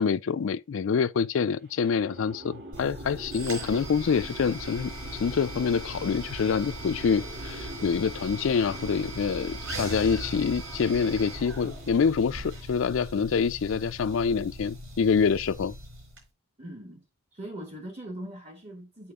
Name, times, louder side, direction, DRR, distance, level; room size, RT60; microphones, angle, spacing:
voice 1, 0.0-15.7, left 6 dB, 65° left, 0.4 m, -26 dB
sound 1, 1.6-12.8, right 1 dB, 50° right, 2.4 m, -45 dB
sound 2, 2.7-16.2, right 1 dB, 85° right, 5.0 m, -39 dB
voice 2, 16.6-17.0 17.3-19.1, right 1 dB, 30° right, 1.3 m, -40 dB
8.6 x 4.5 x 3.7 m
head